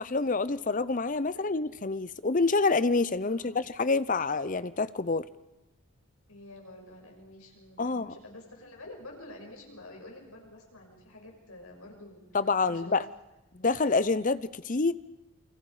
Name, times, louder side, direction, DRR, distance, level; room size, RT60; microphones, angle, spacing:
voice 1, 0.1-5.2 7.8-8.1 12.3-13.0 13.5-14.9, left 3 dB, 35° left, 15 dB, 0.7 m, -27 dB
voice 2, 3.3-3.7 6.3-12.3 12.7-12.9, left 2 dB, 75° left, 1 dB, 6.2 m, -49 dB
29.0 x 24.5 x 5.0 m, 0.99 s
head